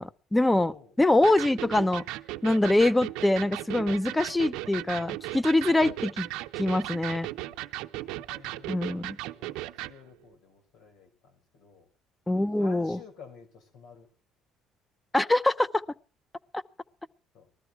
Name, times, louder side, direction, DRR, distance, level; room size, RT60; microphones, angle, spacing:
voice 1, 0.0-2.0 2.4-6.3 6.6-7.3 8.7-9.2 12.3-13.0 15.1-15.8 16.5-16.6, left 2 dB, 10° left, 15 dB, 0.8 m, -24 dB
voice 2, 0.6-0.9 7.4-7.7 8.0-8.8 9.3-11.9 12.6-14.1 17.3-17.5, left 5 dB, 80° left, 5 dB, 6.2 m, -52 dB
Electric guitar, 1.2-10.0, right 17 dB, 85° right, 0.7 m, -37 dB
20.0 x 13.5 x 4.7 m, 0.36 s
supercardioid pair, 90°, 0 cm